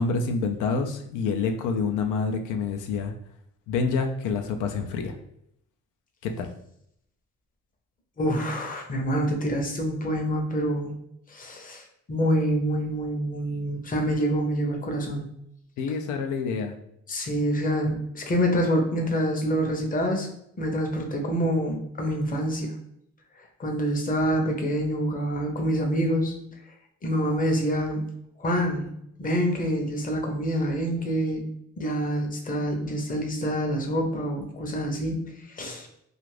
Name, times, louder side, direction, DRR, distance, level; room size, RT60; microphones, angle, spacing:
voice 1, 0.0-3.1 3.7-5.1 6.2-6.5 15.8-16.8, left 4 dB, 85° left, 5 dB, 0.5 m, -27 dB
voice 2, 8.2-10.9 11.3-11.8 12.1-15.2 17.1-20.3 20.6-22.7 23.6-26.4 27.0-28.0 28.4-28.8 29.2-31.4 31.8-35.2 35.5-35.9, equal, 30° left, 2 dB, 0.6 m, -26 dB
2.5 x 2.4 x 3.2 m, 0.74 s
cardioid pair, 90°, 30 cm